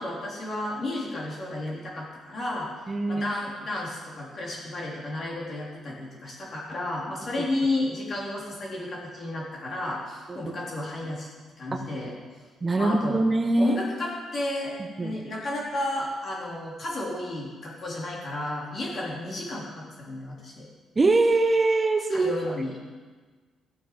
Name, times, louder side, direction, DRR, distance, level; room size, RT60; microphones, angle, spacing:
voice 1, 0.0-2.7 3.1-11.3 11.6-12.1 12.8-13.3 13.6-20.7 22.1-22.9, left 1 dB, 50° left, -4 dB, 3.8 m, -32 dB
voice 2, 2.9-3.2 10.4-10.5 11.7-11.8 12.6-13.8 15.0-15.1 21.0-22.3, right 2 dB, 30° right, 6 dB, 0.8 m, -22 dB
14.5 x 7.1 x 5.2 m, 1.4 s
cardioid pair, 90°, 0 cm